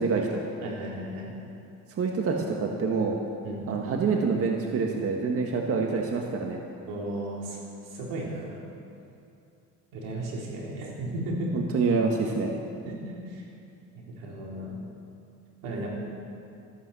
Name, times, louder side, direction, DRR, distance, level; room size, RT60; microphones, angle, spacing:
voice 1, 0.0-0.4 2.0-3.2 3.7-6.6 11.5-12.6, right 4 dB, 45° right, 1 dB, 1.6 m, -26 dB
voice 2, 0.6-1.3 3.4-3.6 6.9-7.6 7.9-8.7 9.9-11.5 12.8-13.4 13.9-14.8 15.6-15.9, right 1 dB, 90° right, -3 dB, 4.1 m, -35 dB
14.5 x 12.0 x 7.6 m, 2.6 s
cardioid pair, 115°, 32 cm